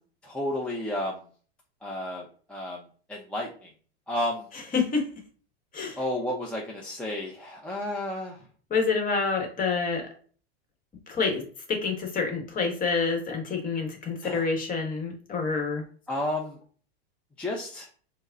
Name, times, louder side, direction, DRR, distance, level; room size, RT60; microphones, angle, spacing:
voice 1, 0.2-1.2 1.8-2.8 3.1-3.7 4.1-4.5 6.0-8.4 14.2-14.4 16.1-16.6 17.4-17.9, left 1 dB, 5° left, -3 dB, 0.5 m, -32 dB
voice 2, 4.5-5.2 5.7-6.0 8.7-10.1 11.1-11.4 11.7-15.8, left 4 dB, 25° left, 3 dB, 1.0 m, -27 dB
4.6 x 2.1 x 2.5 m, 0.42 s
hypercardioid pair, 110°, 32 cm